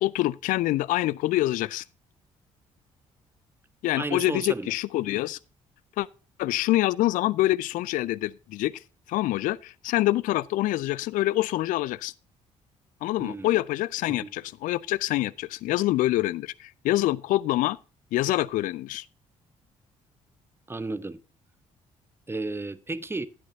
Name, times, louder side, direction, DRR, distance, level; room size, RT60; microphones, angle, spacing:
voice 1, 0.0-1.8 3.8-5.4 6.0-6.1 6.4-8.8 9.1-12.1 13.0-17.8 18.1-19.1, left 16 dB, 50° left, 0.4 m, -26 dB
voice 2, 4.0-4.7 13.2-13.5 14.1-14.3 20.7-21.2 22.3-23.3, right 2 dB, 15° right, 0.8 m, -33 dB
11.0 x 10.5 x 2.7 m
figure-of-eight pair, 45°, 17 cm